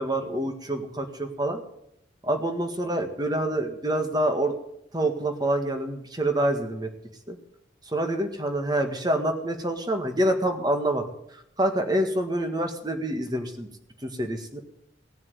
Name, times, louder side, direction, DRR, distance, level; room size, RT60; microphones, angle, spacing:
voice 1, 0.0-1.6 2.2-4.5 4.9-6.9 7.3-7.4 7.9-11.0 11.6-13.7 14.0-14.6, right 1 dB, 20° right, 5 dB, 1.7 m, -26 dB
17.5 x 7.3 x 9.6 m, 0.77 s
head